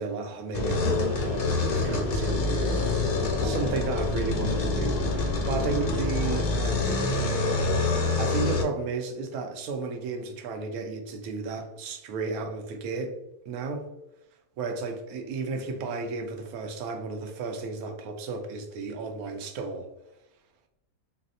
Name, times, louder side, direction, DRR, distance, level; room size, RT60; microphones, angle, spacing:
voice 1, 0.0-7.0 8.2-13.1 13.5-13.9 14.6-19.9, right 4 dB, 90° right, 1.1 m, -33 dB
sound 1, 0.5-8.6, left 3 dB, 65° left, 0.5 m, -26 dB
4.0 x 2.0 x 2.6 m
omnidirectional pair, 1.5 m